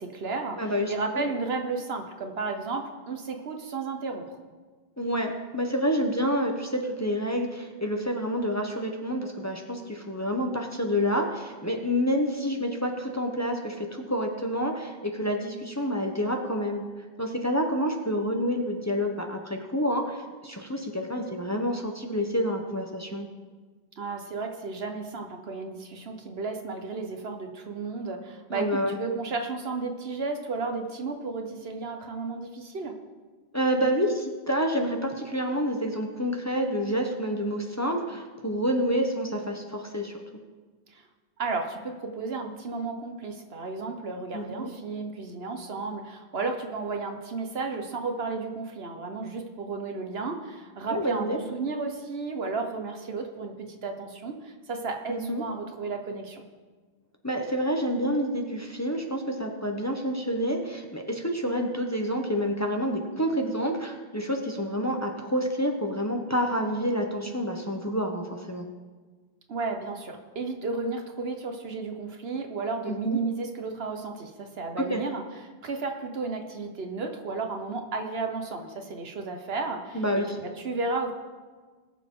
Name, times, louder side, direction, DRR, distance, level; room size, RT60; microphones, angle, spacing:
voice 1, 0.0-4.4 24.0-33.0 40.9-41.0 41.4-56.4 69.5-75.2 75.6-80.0 80.4-81.1, right 4 dB, 75° right, 4 dB, 1.4 m, -33 dB
voice 2, 0.6-1.2 5.0-16.8 17.2-23.3 28.5-29.0 33.5-40.2 44.3-44.7 50.9-51.4 55.1-55.4 57.2-68.6 72.8-73.2 74.9-75.0 79.9-80.4, equal, 15° left, 2 dB, 1.0 m, -28 dB
20.5 x 6.8 x 3.8 m, 1.4 s
omnidirectional pair, 1.0 m